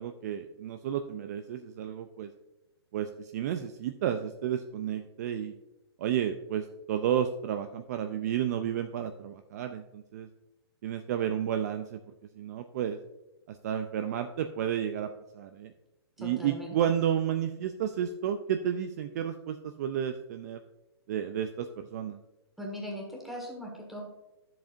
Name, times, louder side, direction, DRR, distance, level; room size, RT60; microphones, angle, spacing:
voice 1, 0.0-2.3 2.9-5.5 6.0-10.3 10.8-12.0 12.3-13.0 13.5-15.7 16.2-20.6 21.1-22.2, right 9 dB, 40° right, 7 dB, 0.4 m, -32 dB
voice 2, 16.2-16.7 22.6-24.0, equal, ahead, -1 dB, 1.7 m, -39 dB
10.5 x 7.3 x 2.6 m, 0.95 s
hypercardioid pair, 150°, 14 cm